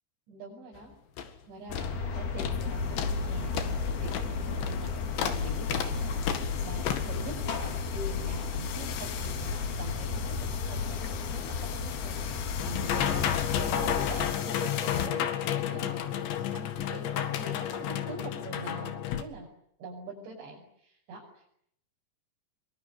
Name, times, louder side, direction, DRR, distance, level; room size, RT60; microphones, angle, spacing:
voice 1, 0.3-0.9 1.5-12.4 12.6-16.1 16.5-19.5 19.8-21.5, right 2 dB, 75° right, -3 dB, 8.1 m, -43 dB
sound 1, 0.8-0.9 1.2-1.4 1.7-2.0 2.4-2.6 3.0-19.2, left 10 dB, 75° left, 4.1 m, -34 dB
sound 2, 1.7-14.3, left 5 dB, 55° left, 4.6 m, -33 dB
25.5 x 23.5 x 10.0 m, 0.74 s
omnidirectional pair, 5.3 m